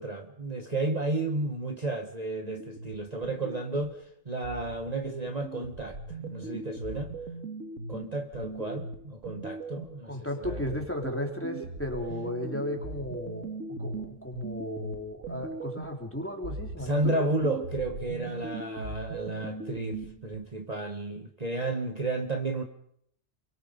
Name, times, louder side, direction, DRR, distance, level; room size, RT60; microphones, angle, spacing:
voice 1, 0.0-7.1 7.9-10.2 10.4-10.8 16.8-22.6, right 2 dB, 30° right, 5 dB, 1.6 m, -32 dB
sound 1, 2.4-4.0 4.4-10.0 10.4-16.1 16.4-20.4, right 3 dB, 90° right, 2.2 m, -39 dB
voice 2, 10.1-13.5 13.8-17.2, left 1 dB, 10° left, 2 dB, 3.8 m, -35 dB
29.0 x 23.0 x 5.4 m, 0.69 s
omnidirectional pair, 1.3 m